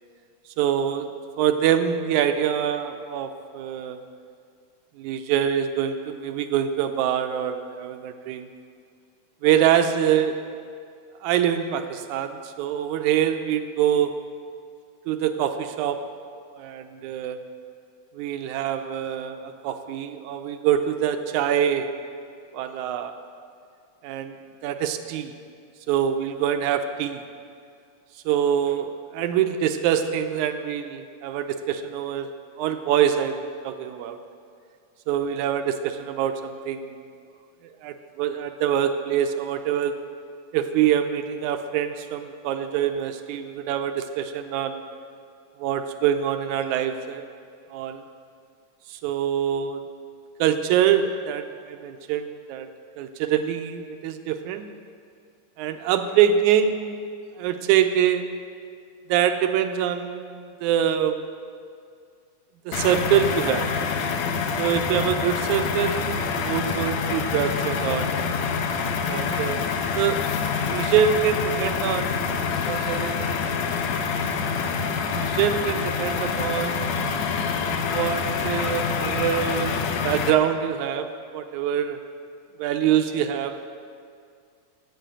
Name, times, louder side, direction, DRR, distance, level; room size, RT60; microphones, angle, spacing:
voice 1, 0.6-1.1 1.4-4.0 5.0-8.5 9.4-10.4 11.2-14.1 15.1-16.0 16.6-17.4 18.1-21.9 22.5-23.1 24.0-24.4 24.6-25.3 25.9-27.2 28.3-32.3 32.6-34.2 35.1-37.0 37.8-40.0 40.5-44.8 45.6-47.3 47.7-48.0 48.9-49.8 50.4-52.7 53.0-54.7 55.6-57.0 57.4-58.3 59.1-61.2 62.7-63.7 64.6-68.2 69.1-70.2 70.6-72.3 72.7-73.2 75.1-76.9 77.8-81.1 81.3-82.0 82.6-83.6, right 9 dB, 80° right, 8 dB, 1.9 m, -25 dB
sound 1, 62.7-80.3, left 5 dB, 75° left, 1.7 m, -26 dB
9.2 x 7.7 x 8.8 m, 2.3 s
omnidirectional pair, 3.7 m